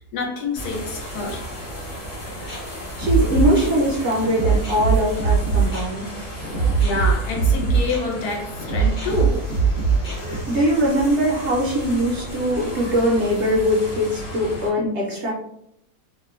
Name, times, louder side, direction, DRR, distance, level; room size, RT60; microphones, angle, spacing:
voice 1, 0.0-1.6 6.8-9.5 12.7-13.0, left 3 dB, 80° left, 1.2 m, -28 dB
sound 1, 0.5-14.7, equal, 35° left, 0.7 m, -35 dB
sound 2, 2.2-10.4, right 5 dB, 60° left, 1.3 m, -22 dB
voice 2, 3.0-6.0 10.5-15.3, equal, 60° right, 0.7 m, -21 dB
2.8 x 2.2 x 2.3 m
omnidirectional pair, 1.6 m